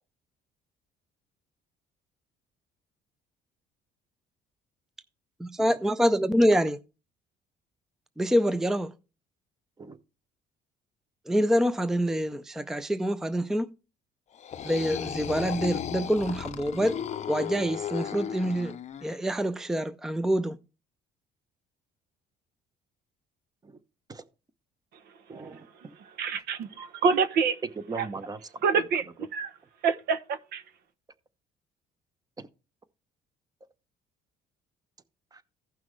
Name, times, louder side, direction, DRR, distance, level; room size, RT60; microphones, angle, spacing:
voice 1, 5.4-6.8 8.2-8.9 11.3-13.7 14.6-17.0 17.3-18.7 19.0-20.6, equal, 5° right, 0.5 m, -26 dB
sound 1, 14.3-19.2, left 9 dB, 40° left, 0.6 m, -35 dB
voice 2, 25.3-25.9 27.9-28.4 28.7-28.8 32.4-32.5 35.3-35.4, right 4 dB, 20° right, 0.9 m, -40 dB
voice 3, 26.2-27.6 28.0-28.1 28.6-29.0 29.3-29.5 29.8-30.6, right 5 dB, 70° right, 0.9 m, -26 dB
15.5 x 5.8 x 3.2 m
cardioid pair, 110°, 17 cm